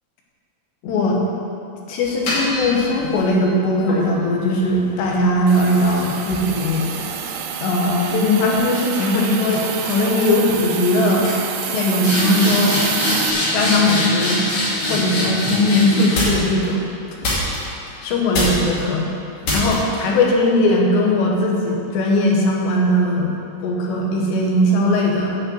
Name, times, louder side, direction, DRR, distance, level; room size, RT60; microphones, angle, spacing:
voice 1, 0.8-1.2 1.9-6.9 7.6-11.3 11.7-12.9 13.5-14.4 14.9-16.8 18.0-19.1 19.5-23.3 23.6-25.4, left 1 dB, 85° left, -1 dB, 3.5 m, -19 dB
sound 1, 2.0-3.3 3.9-7.5 7.8-8.2 9.0-9.2 9.5-9.9 10.2-10.6 10.9-11.0 11.2-16.6 17.2-17.9 18.3-18.8 19.4-20.0, left 1 dB, 55° left, 3.8 m, -24 dB
Hiss, 5.5-13.3, right 8 dB, 85° right, 2.8 m, -28 dB
10.0 x 5.5 x 7.8 m, 2.6 s
omnidirectional pair, 4.8 m